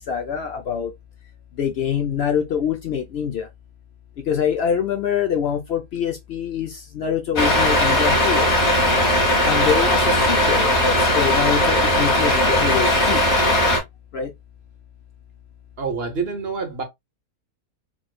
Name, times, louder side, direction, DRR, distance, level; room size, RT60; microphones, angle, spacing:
voice 1, 0.1-0.9 1.6-3.5 4.3-8.5 9.4-13.2 14.1-14.3, left 8 dB, 70° left, 0.6 m, -24 dB
Truck, 7.4-13.8, left 1 dB, 45° left, 1.3 m, -18 dB
voice 2, 15.8-16.8, right 5 dB, 55° right, 0.8 m, -27 dB
3.1 x 3.0 x 2.2 m
omnidirectional pair, 1.7 m